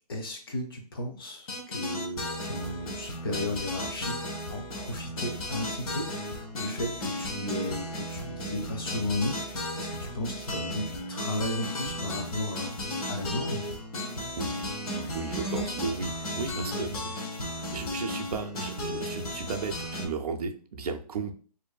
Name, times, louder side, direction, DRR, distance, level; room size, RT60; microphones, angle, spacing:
voice 1, 0.1-13.6 14.9-15.1 16.3-17.1 17.4-17.6, left 1 dB, 35° left, 3 dB, 0.5 m, -35 dB
sound 1, 1.5-20.1, left 1 dB, 60° left, 0.7 m, -35 dB
voice 2, 15.1-17.1 17.7-21.3, right 4 dB, 65° right, 5 dB, 0.4 m, -34 dB
2.6 x 2.3 x 2.3 m, 0.42 s
hypercardioid pair, 165°, 21 cm